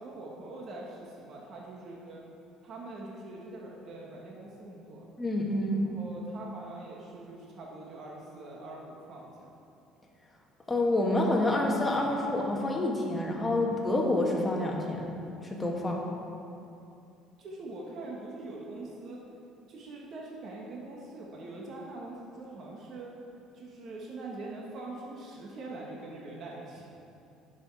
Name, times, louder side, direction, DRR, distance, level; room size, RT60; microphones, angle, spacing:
voice 1, 0.0-2.2 2.6-5.1 5.7-9.5 17.4-19.2 19.7-23.1 23.5-26.9, right 2 dB, 45° right, -3 dB, 1.3 m, -43 dB
voice 2, 5.2-5.9 10.7-15.0 15.4-16.0, left 1 dB, 15° left, -1 dB, 1.3 m, -28 dB
10.5 x 6.2 x 4.7 m, 2.7 s
cardioid pair, 140°, 0 cm